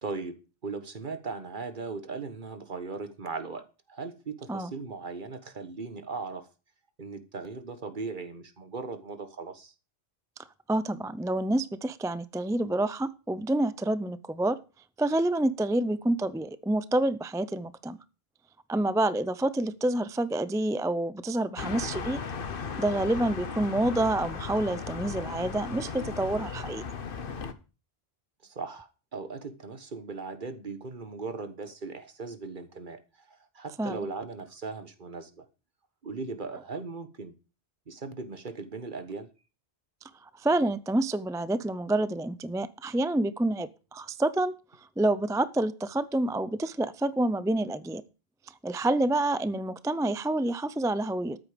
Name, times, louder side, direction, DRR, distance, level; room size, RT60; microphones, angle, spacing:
voice 1, 0.0-6.5 7.0-9.7 28.4-35.4 36.0-37.3 37.9-39.3, right 4 dB, 50° right, 1.4 m, -38 dB
voice 2, 10.7-14.6 15.0-18.0 18.7-22.2 22.8-26.8 33.8-34.1 40.4-44.5 45.0-48.0 48.6-51.4, right 1 dB, 5° right, 0.3 m, -28 dB
sound 1, 21.6-27.5, left 5 dB, 60° left, 1.2 m, -36 dB
13.5 x 8.8 x 5.1 m
omnidirectional pair, 1.1 m